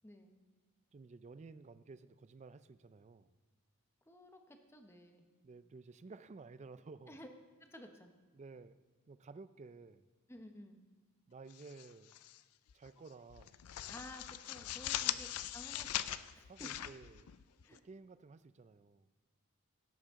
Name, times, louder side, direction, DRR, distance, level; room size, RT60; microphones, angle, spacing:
voice 1, 0.0-0.4 4.1-5.3 7.1-7.3 7.7-8.1 10.3-10.8 13.9-16.1 16.3-16.7 17.6-17.8, left 1 dB, 10° left, 4 dB, 0.9 m, -53 dB
voice 2, 0.9-3.4 5.4-7.2 8.3-8.8 9.1-10.1 11.3-12.1 12.7-13.5 14.9-15.1 16.5-17.3 17.7-19.1, right 4 dB, 30° right, 14 dB, 0.4 m, -54 dB
sound 1, 11.5-12.4 12.7-12.9 13.3-17.8, left 12 dB, 85° left, 0.4 m, -41 dB
17.0 x 8.0 x 3.7 m, 1.4 s
head